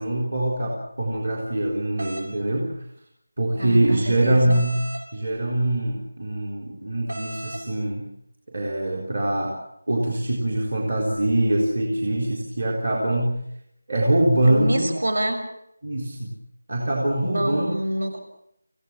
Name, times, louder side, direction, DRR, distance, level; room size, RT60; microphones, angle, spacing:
voice 1, 0.0-2.7 3.4-4.8 5.1-8.1 8.5-9.6 9.9-13.4 13.9-14.8 15.8-16.3 16.7-17.7, right 1 dB, 40° right, 0 dB, 3.9 m, -23 dB
sound 1, 2.0-2.3 4.5-5.1 7.1-7.6, right 1 dB, 75° right, 7.9 m, -35 dB
voice 2, 3.6-4.6 14.4-15.4 17.2-18.2, right 1 dB, 60° right, 6 dB, 6.6 m, -27 dB
28.5 x 16.5 x 7.4 m, 0.76 s
figure-of-eight pair, 180°, 0 cm